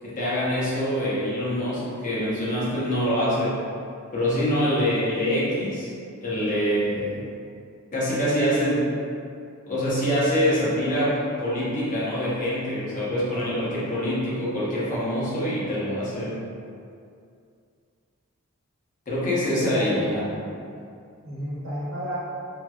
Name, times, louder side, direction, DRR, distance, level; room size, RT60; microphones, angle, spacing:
voice 1, 0.0-3.6 4.1-5.9 6.2-7.3 7.9-8.9 9.7-16.4 19.1-20.2, equal, 40° left, -8 dB, 0.8 m, -25 dB
voice 2, 19.6-20.4 21.2-22.2, equal, 65° right, -8 dB, 0.8 m, -32 dB
2.9 x 2.8 x 2.3 m, 2.4 s
head